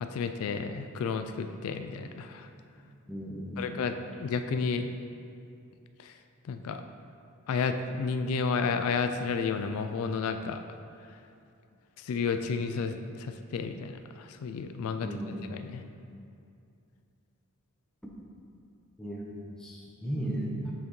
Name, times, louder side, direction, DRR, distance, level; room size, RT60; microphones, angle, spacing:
voice 1, 0.0-2.5 3.6-4.9 6.0-6.1 6.5-6.8 7.5-10.6 12.0-15.1 15.4-15.8, left 5 dB, 75° left, 8 dB, 0.3 m, -31 dB
voice 2, 3.1-3.7 15.0-15.4 19.0-20.7, right 1 dB, 5° left, -4 dB, 0.7 m, -35 dB
6.7 x 5.7 x 3.2 m, 2.5 s
head